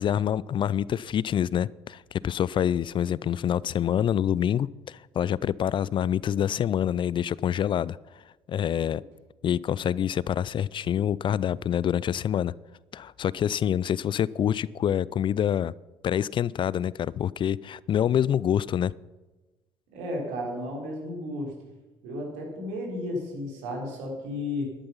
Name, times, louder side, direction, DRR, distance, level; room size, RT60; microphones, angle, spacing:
voice 1, 0.0-8.0 8.5-9.0 9.4-12.5 12.9-15.7 16.0-18.9, left 9 dB, 40° left, 22 dB, 0.4 m, -26 dB
voice 2, 19.9-21.6 22.0-24.7, left 1 dB, 70° right, 0 dB, 4.0 m, -33 dB
12.0 x 11.5 x 5.7 m, 1.1 s
hypercardioid pair, 55°, 13 cm